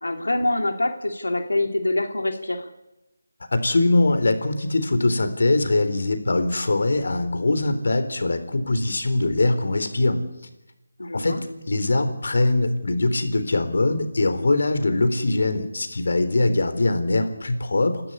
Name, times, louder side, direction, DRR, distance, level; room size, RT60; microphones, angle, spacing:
voice 1, 0.0-2.7 11.0-11.4, left 2 dB, 85° left, 5 dB, 2.8 m, -25 dB
voice 2, 3.5-10.2 11.1-11.4 11.7-18.0, left 2 dB, 65° left, 9 dB, 3.8 m, -22 dB
29.5 x 13.0 x 9.8 m, 0.97 s
figure-of-eight pair, 165°, 0 cm